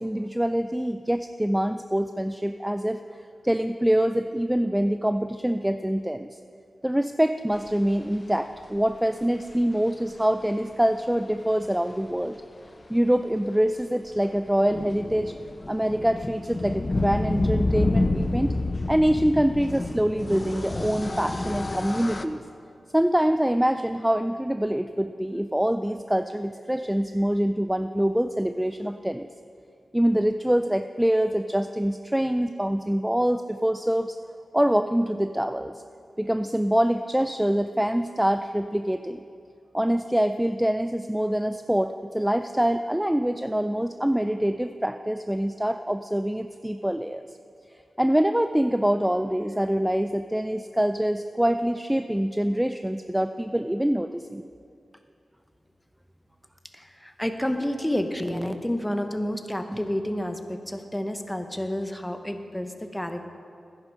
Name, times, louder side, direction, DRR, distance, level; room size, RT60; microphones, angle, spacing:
voice 1, 0.0-3.0 3.4-6.4 6.8-12.4 12.9-15.3 15.7-18.5 18.9-22.4 22.9-29.3 29.9-34.2 34.5-35.8 36.2-39.2 39.7-47.3 48.0-54.4, equal, 10° right, 9 dB, 0.3 m, -25 dB
sound 1, 9.5-9.6 10.8-10.9 11.2-11.3 11.5-11.6 14.2-22.2, left 2 dB, 40° left, 0.6 m, -29 dB
voice 2, 56.7-63.3, left 1 dB, 10° left, 7 dB, 1.0 m, -30 dB
10.5 x 9.8 x 5.4 m, 2.5 s
cardioid pair, 45°, 0 cm